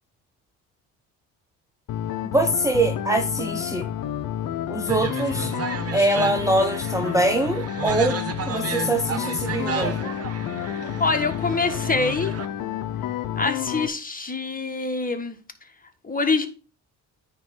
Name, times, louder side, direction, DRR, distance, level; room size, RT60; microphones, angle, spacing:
sound 1, 1.9-13.9, left 11 dB, 60° left, 0.8 m, -30 dB
voice 1, 2.3-3.9 4.7-5.5 5.9-8.2 8.5-10.1, right 2 dB, 10° right, 0.7 m, -23 dB
sound 2, 4.9-12.5, right 6 dB, 40° right, 1.1 m, -33 dB
voice 2, 11.0-12.3 13.4-15.4 16.0-16.5, left 3 dB, 20° left, 1.4 m, -25 dB
9.3 x 3.3 x 6.5 m
supercardioid pair, 70°, 38 cm